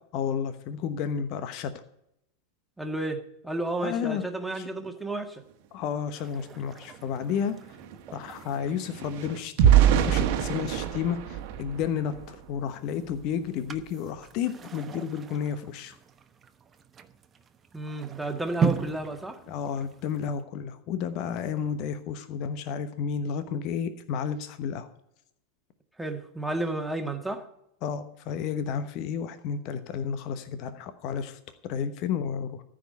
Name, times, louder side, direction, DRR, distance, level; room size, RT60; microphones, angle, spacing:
voice 1, 0.1-1.7 3.8-4.2 4.6-4.7 5.7-7.6 8.1-16.0 19.5-24.9 27.8-32.6, left 7 dB, 50° left, 10 dB, 1.0 m, -32 dB
voice 2, 2.8-5.4 17.7-19.4 26.0-27.4, right 2 dB, 5° right, 4 dB, 1.7 m, -32 dB
sound 1, 6.2-20.4, right 7 dB, 25° right, 1.0 m, -39 dB
sound 2, 6.6-6.7 7.0-12.5 13.0-13.2 13.6-13.8, right 10 dB, 55° right, 1.3 m, -25 dB
14.0 x 5.2 x 9.4 m, 0.80 s
figure-of-eight pair, 90°, 0 cm